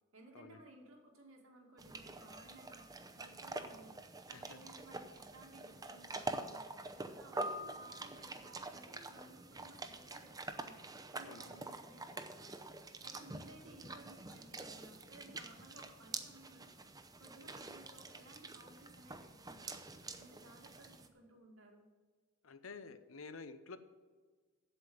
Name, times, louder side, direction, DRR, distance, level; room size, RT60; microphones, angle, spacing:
voice 1, 0.1-2.9 3.2-4.0 4.3-10.8 11.1-12.6 13.0-16.7 17.2-19.8 20.2-21.9, right 2 dB, 90° right, 0 dB, 2.4 m, -58 dB
sound 1, 1.8-21.1, right 2 dB, 20° right, 0.6 m, -46 dB
voice 2, 22.4-23.8, left 4 dB, 75° left, 11 dB, 0.7 m, -50 dB
8.2 x 7.6 x 7.7 m, 1.5 s
head